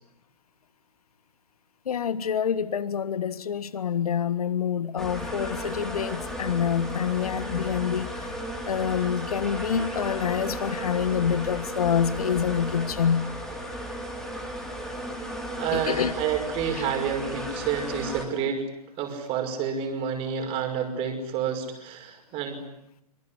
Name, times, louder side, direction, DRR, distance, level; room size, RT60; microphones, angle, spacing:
voice 1, 1.8-8.3 8.7-13.3 15.7-16.2 16.7-16.9, left 8 dB, 65° left, 1.7 m, -27 dB
sound 1, 5.0-18.2, equal, ahead, 4.2 m, -34 dB
voice 2, 15.6-18.7 19.0-22.6, right 7 dB, 25° right, 5.7 m, -29 dB
25.0 x 23.5 x 10.0 m
hypercardioid pair, 130°, 20 cm